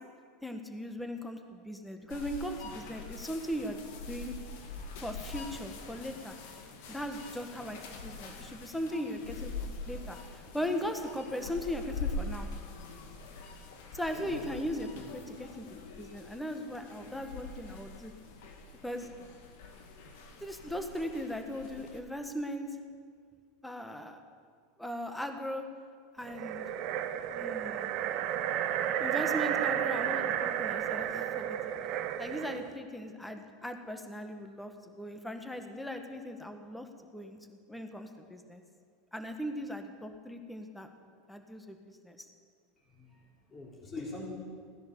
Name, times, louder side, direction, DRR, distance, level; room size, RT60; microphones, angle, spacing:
voice 1, 0.4-3.8 4.1-4.4 5.0-6.4 6.9-12.5 13.9-18.1 18.8-19.1 20.4-22.8 23.6-24.2 24.8-25.6 26.1-26.6 27.3-28.0 29.0-31.7 32.2-36.9 37.1-38.6 39.1-40.9 41.3-42.2, equal, 5° left, 6 dB, 1.5 m, -38 dB
sound 1, 2.1-22.0, left 3 dB, 70° left, 2.0 m, -44 dB
sound 2, 26.3-32.7, right 10 dB, 55° right, 1.0 m, -32 dB
voice 2, 42.8-44.3, left 2 dB, 25° left, -3 dB, 3.9 m, -44 dB
17.0 x 10.5 x 6.9 m, 2.1 s
hypercardioid pair, 100°, 0 cm